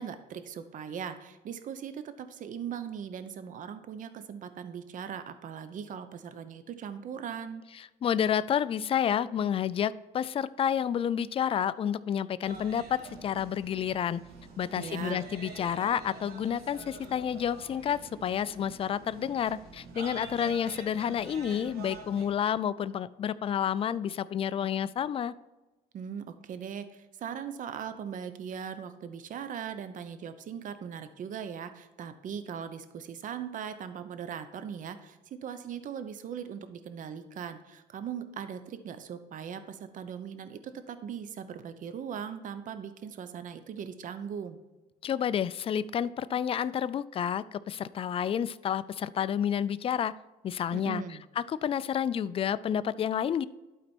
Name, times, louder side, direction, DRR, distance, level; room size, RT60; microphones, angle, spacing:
voice 1, 0.0-7.6 14.8-15.2 25.9-44.6 50.7-51.2, right 8 dB, 50° right, 11 dB, 0.8 m, -39 dB
voice 2, 8.0-14.2 14.6-25.3 45.0-50.1 50.4-51.0 51.4-53.4, left 9 dB, 35° left, 16 dB, 0.3 m, -30 dB
sound 1, 12.4-22.3, right 4 dB, 65° right, 1.7 m, -47 dB
12.0 x 4.2 x 4.4 m, 1.1 s
cardioid pair, 110°, 17 cm